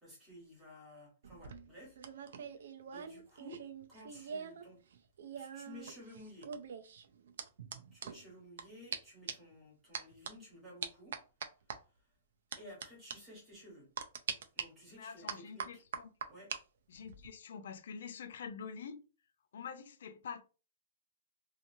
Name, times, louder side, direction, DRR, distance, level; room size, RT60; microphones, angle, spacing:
voice 1, 0.0-3.6 3.9-4.8 5.4-6.5 7.9-11.2 12.6-13.9 14.5-15.8 16.3-16.6, equal, 10° right, 1.2 m, -54 dB
sound 1, 1.2-4.7 4.9-8.6 8.9-9.0 9.3-9.5 9.9-10.3 10.8-11.8 12.5-12.9 13.1-13.2 14.0-14.6 15.3-16.6 16.9-17.3, right 6 dB, 70° right, 0.4 m, -43 dB
voice 2, 15.0-16.1 16.9-19.0 19.5-20.4, left 6 dB, 65° left, 0.4 m, -46 dB
2.8 x 2.5 x 2.6 m
hypercardioid pair, 180°, 0 cm